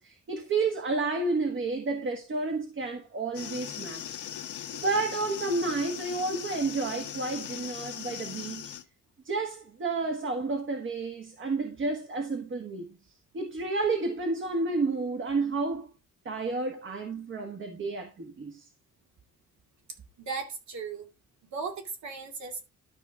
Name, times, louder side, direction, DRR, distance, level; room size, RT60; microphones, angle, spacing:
voice 1, 0.0-4.2 4.7-8.7 9.2-12.9 13.3-15.9 16.2-18.6, right 3 dB, 40° right, 1.5 m, -31 dB
sound 1, 3.3-8.8, left 10 dB, 75° left, 1.2 m, -39 dB
voice 2, 19.9-21.1 21.4-22.6, right 5 dB, 65° right, 2.5 m, -37 dB
12.5 x 5.5 x 3.5 m
cardioid pair, 155°, 30 cm